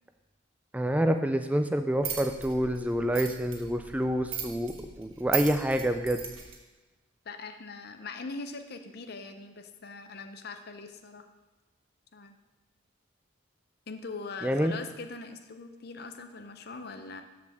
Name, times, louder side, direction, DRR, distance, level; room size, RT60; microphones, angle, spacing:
voice 1, 0.7-6.2 14.4-14.7, equal, 5° right, 7 dB, 0.4 m, -27 dB
sound 1, 2.0-6.5, right 9 dB, 85° right, 1.4 m, -37 dB
voice 2, 7.2-11.3 12.1-12.4 13.9-17.2, left 3 dB, 50° left, 7 dB, 0.6 m, -41 dB
13.0 x 4.9 x 3.5 m, 1.2 s
head